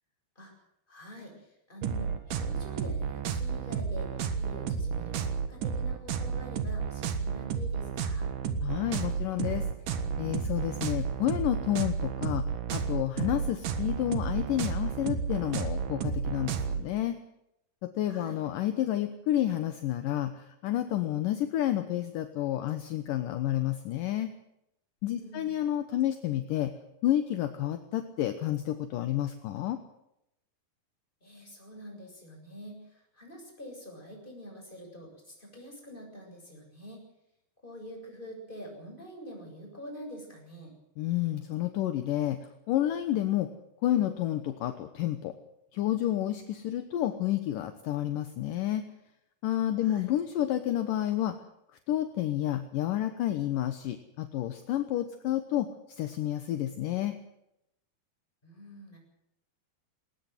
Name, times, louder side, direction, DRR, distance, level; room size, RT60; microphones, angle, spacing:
voice 1, 0.9-8.3 18.1-18.4 25.1-25.5 31.2-37.0 37.6-40.7 49.8-50.1 58.4-59.0, equal, 10° left, 1 dB, 7.6 m, -46 dB
sound 1, 1.8-16.8, right 6 dB, 65° right, 2.9 m, -32 dB
voice 2, 8.6-9.7 10.2-12.4 12.7-17.2 17.8-24.3 25.0-26.7 27.0-29.8 41.0-42.4 42.7-43.5 43.8-45.3 45.7-48.8 49.4-51.4 51.9-55.7 56.0-57.1, left 12 dB, 70° left, 8 dB, 2.6 m, -30 dB
20.0 x 19.0 x 8.0 m, 0.83 s
omnidirectional pair, 4.3 m